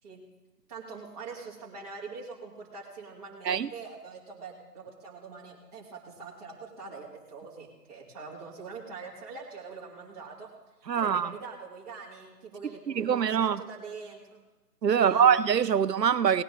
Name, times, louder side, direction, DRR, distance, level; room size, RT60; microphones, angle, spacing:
voice 1, 0.7-10.5 10.9-14.4 14.9-15.3, right 4 dB, 25° right, 2.9 m, -43 dB
voice 2, 10.9-11.3 12.9-13.6 14.8-16.4, right 8 dB, 80° right, 0.7 m, -23 dB
19.0 x 9.8 x 4.0 m
figure-of-eight pair, 155°, 49 cm